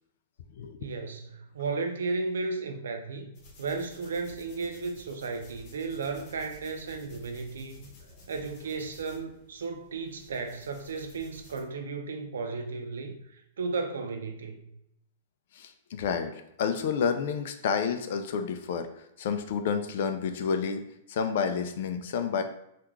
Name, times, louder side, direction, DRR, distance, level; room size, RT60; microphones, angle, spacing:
voice 1, 0.8-7.9 8.3-14.7, right 4 dB, 85° right, 5 dB, 0.5 m, -34 dB
sound 1, 3.3-11.6, left 1 dB, 35° left, 1.2 m, -53 dB
voice 2, 15.5-20.8 21.1-22.4, left 6 dB, 65° left, 7 dB, 0.4 m, -30 dB
3.5 x 2.4 x 3.1 m, 0.79 s
hypercardioid pair, 140°, 0 cm